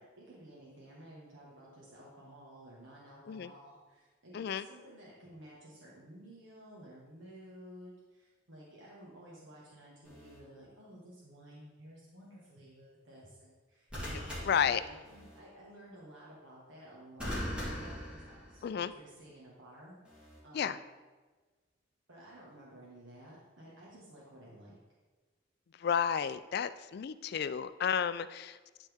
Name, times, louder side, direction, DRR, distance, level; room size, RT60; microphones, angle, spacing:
voice 1, 0.0-20.8 22.1-24.7, right 1 dB, 75° right, -6 dB, 1.6 m, -54 dB
voice 2, 4.3-4.7 14.1-14.8 18.6-18.9 20.5-20.8 25.7-28.6, left 7 dB, 55° left, 13 dB, 0.3 m, -32 dB
sound 1, 10.0-10.4 13.9-15.4 17.2-18.9 20.1-20.4, equal, 5° right, 2.2 m, -41 dB
11.5 x 4.2 x 3.5 m, 1.3 s
head